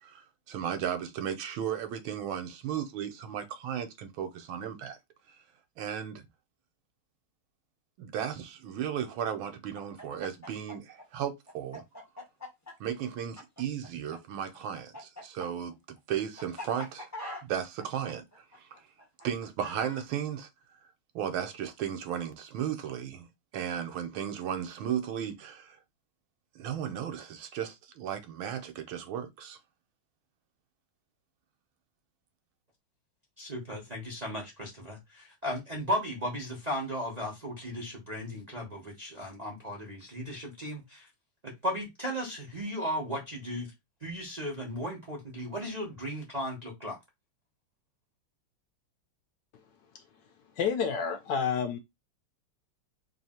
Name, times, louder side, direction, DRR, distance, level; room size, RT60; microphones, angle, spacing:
voice 1, 0.0-5.0 5.8-6.3 8.0-11.8 12.8-17.1 17.4-18.7 19.2-20.5 21.1-23.3 23.5-25.8 26.5-29.6, right 9 dB, 75° right, 1.5 m, -35 dB
Chicken rooster, 9.7-14.2 14.4-20.0, left 1 dB, 15° left, 0.5 m, -44 dB
voice 2, 33.4-41.1 41.4-43.7 44.0-47.0, equal, 35° right, 0.6 m, -36 dB
voice 3, 50.5-51.8, left 6 dB, 75° left, 1.1 m, -29 dB
3.4 x 2.7 x 4.2 m
omnidirectional pair, 2.3 m